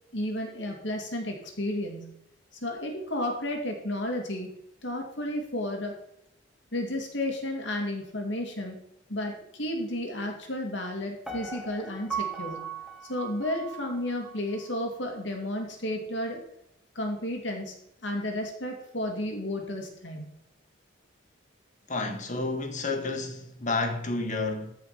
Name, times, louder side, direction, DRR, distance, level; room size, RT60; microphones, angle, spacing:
voice 1, 0.1-2.1 2.6-4.5 4.8-6.0 6.7-8.8 9.1-12.6 13.1-16.4 16.9-17.8 18.0-20.3, left 1 dB, 70° left, 2.6 m, -32 dB
Piano, 11.3-14.3 14.8-14.9, right 6 dB, ahead, 1.5 m, -37 dB
voice 2, 21.9-24.7, left 3 dB, 40° left, 1.6 m, -30 dB
14.0 x 5.7 x 5.9 m
head